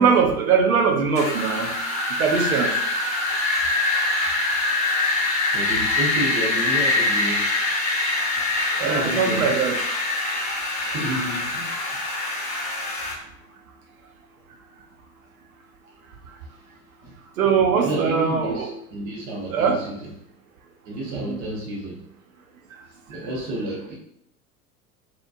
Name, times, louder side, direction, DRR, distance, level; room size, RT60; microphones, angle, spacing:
voice 1, 0.0-1.7 2.2-2.7 8.8-9.7 17.4-18.6 19.5-19.8 21.1-21.4, right 6 dB, 65° right, 2 dB, 0.8 m, -21 dB
Wind, 1.2-13.1, left 2 dB, 15° left, 1.2 m, -24 dB
voice 2, 5.5-7.5 8.8-9.7 10.7-12.2 17.0-17.1 17.7-20.1 20.9-22.0 23.1-24.0, right 1 dB, 35° right, -4 dB, 1.1 m, -30 dB
4.0 x 2.9 x 2.4 m, 0.77 s
figure-of-eight pair, 85°, 45 cm